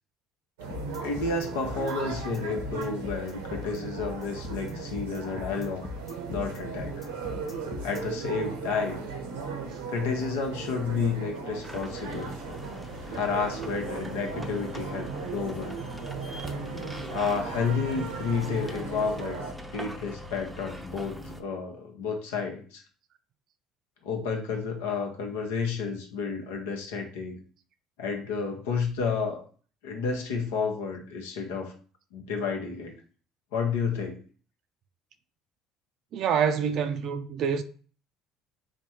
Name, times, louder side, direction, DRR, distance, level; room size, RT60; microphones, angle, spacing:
sound 1, 0.6-19.5, right 5 dB, 90° right, 0.7 m, -37 dB
sound 2, 0.7-8.0, left 5 dB, 40° left, 0.7 m, -40 dB
voice 1, 1.0-5.8 6.3-6.9 7.8-9.0 9.9-12.3 13.1-15.8 17.1-19.4 19.7-22.8 24.0-27.4 28.0-29.5 29.8-31.7 32.1-32.9 33.5-34.2, left 5 dB, 85° left, 0.8 m, -31 dB
sound 3, 11.6-21.4, equal, 5° right, 0.6 m, -42 dB
voice 2, 36.1-37.6, right 7 dB, 60° right, 0.4 m, -26 dB
3.4 x 2.2 x 4.3 m
hypercardioid pair, 75°, 0 cm